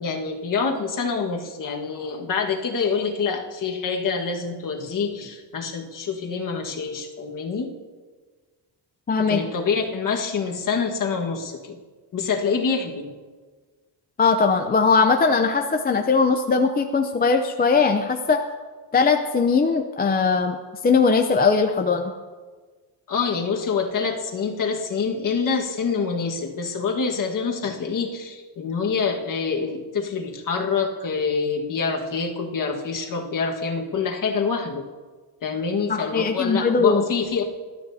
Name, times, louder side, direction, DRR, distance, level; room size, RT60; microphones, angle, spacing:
voice 1, 0.0-7.7 9.3-11.8 12.1-13.1 23.1-34.8 35.4-37.4, left 5 dB, 45° left, 1 dB, 1.6 m, -26 dB
voice 2, 9.1-9.4 14.2-18.4 18.9-20.6 20.8-22.1 35.9-37.0, left 4 dB, 20° left, 5 dB, 0.6 m, -20 dB
20.5 x 12.5 x 2.8 m, 1.4 s
cardioid pair, 140°, 43 cm